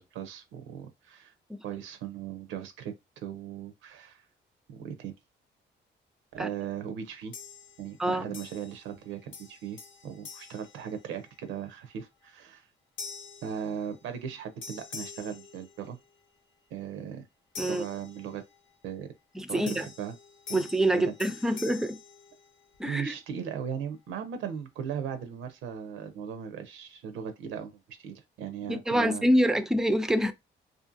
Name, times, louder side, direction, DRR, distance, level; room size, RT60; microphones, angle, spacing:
voice 1, 0.0-1.3 1.6-4.3 4.7-5.1 6.3-7.3 7.8-12.7 13.4-16.0 16.7-17.2 17.7-18.4 18.8-19.1 19.5-20.1 20.5-20.6 20.9-21.1 22.8-29.3, right 8 dB, 85° right, 0.5 m, -38 dB
sound 1, 7.3-8.0 8.3-9.0 9.3-11.5 12.0-12.3 13.0-14.3 14.6-16.2 17.5-18.7 19.7-22.9, left 5 dB, 80° left, 0.8 m, -46 dB
voice 2, 19.4-19.9 20.5-22.0 22.8-23.1 28.7-30.3, right 1 dB, 5° right, 0.3 m, -26 dB
2.5 x 2.4 x 2.5 m
cardioid pair, 90°, 20 cm